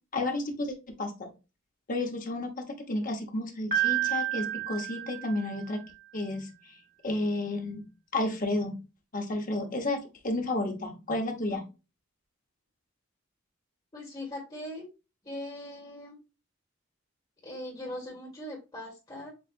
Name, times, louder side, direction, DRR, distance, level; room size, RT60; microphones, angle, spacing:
voice 1, 0.1-1.3 1.9-5.8 6.1-6.5 7.0-7.8 8.1-8.7 9.1-11.7, left 2 dB, 40° left, 3 dB, 1.0 m, -31 dB
Piano, 3.7-5.8, right 11 dB, 45° right, 2.0 m, -30 dB
voice 2, 13.9-14.8 15.2-16.2 17.4-19.3, left 1 dB, 25° left, -3 dB, 1.5 m, -40 dB
7.2 x 2.4 x 2.5 m, 0.29 s
head